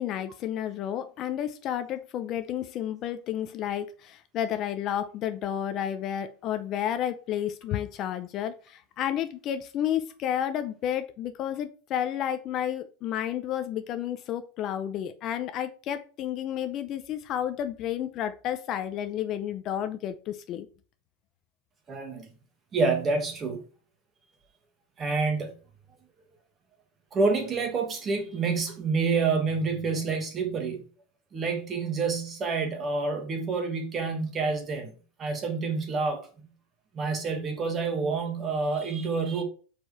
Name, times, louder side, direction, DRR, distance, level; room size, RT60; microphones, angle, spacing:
voice 1, 0.0-20.7, left 10 dB, 35° left, 0.5 m, -31 dB
voice 2, 21.9-22.3 22.7-23.6 25.0-25.5 27.1-30.8 31.3-34.9 35.2-36.3 36.9-39.4, right 4 dB, 25° right, 1.4 m, -28 dB
5.1 x 4.5 x 4.7 m
supercardioid pair, 155°, 0 cm